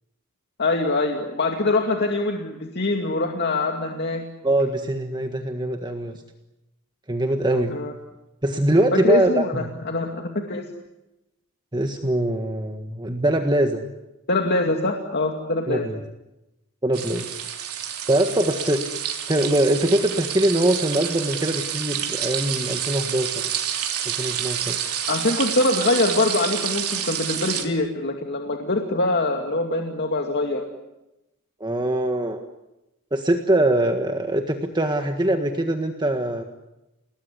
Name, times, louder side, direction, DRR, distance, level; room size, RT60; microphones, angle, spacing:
voice 1, 0.6-4.2 7.7-7.9 8.9-10.7 14.3-15.8 25.1-30.6, left 2 dB, 50° left, 3 dB, 2.4 m, -23 dB
voice 2, 4.4-6.1 7.1-7.8 8.4-9.7 11.7-13.8 15.7-16.0 16.8-17.3 18.1-18.8 19.3-23.5 24.0-24.8 31.6-32.4 33.1-36.4, right 1 dB, 20° right, 5 dB, 1.6 m, -22 dB
sound 1, 16.9-27.7, right 9 dB, 90° right, 3.4 m, -28 dB
30.0 x 19.5 x 9.8 m, 0.94 s
head